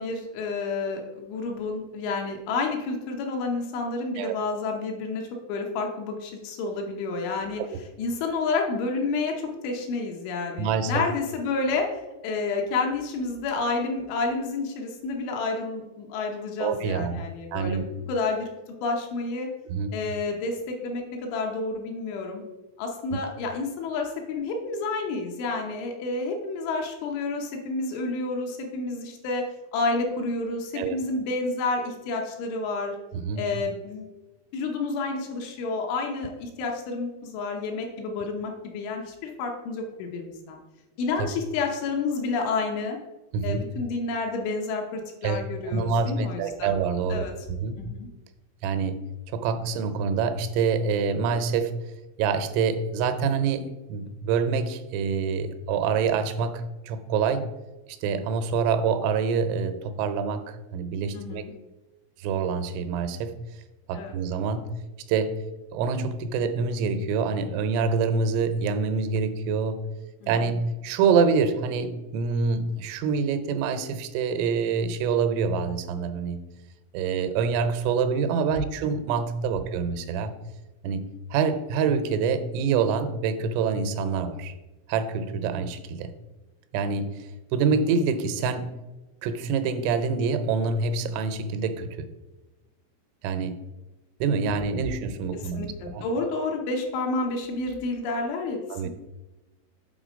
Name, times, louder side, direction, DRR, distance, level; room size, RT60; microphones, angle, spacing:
voice 1, 0.0-7.6 8.0-11.9 12.2-18.5 18.8-19.5 19.9-22.4 22.8-29.5 29.7-33.0 33.4-34.1 34.5-40.6 41.0-43.0 43.4-46.8 47.1-47.3 47.8-48.1 61.1-61.5 63.9-64.1 70.2-70.6 95.3-98.9, left 3 dB, 75° left, 1 dB, 3.1 m, -30 dB
voice 2, 10.6-11.0 16.6-17.2 17.5-17.8 19.7-19.9 30.8-31.0 33.1-33.5 41.2-41.3 43.3-43.6 45.2-47.8 48.6-49.0 49.3-51.7 52.2-57.5 57.9-61.4 62.2-63.4 63.9-64.7 65.1-65.4 65.7-69.9 70.3-70.6 70.8-76.4 76.9-80.4 80.8-84.5 84.9-86.1 86.7-88.7 89.2-92.1 93.2-93.6 94.2-96.1 98.7-98.9, right 5 dB, 85° right, 10 dB, 3.2 m, -26 dB
8.1 x 4.1 x 5.0 m, 1.1 s
omnidirectional pair, 5.8 m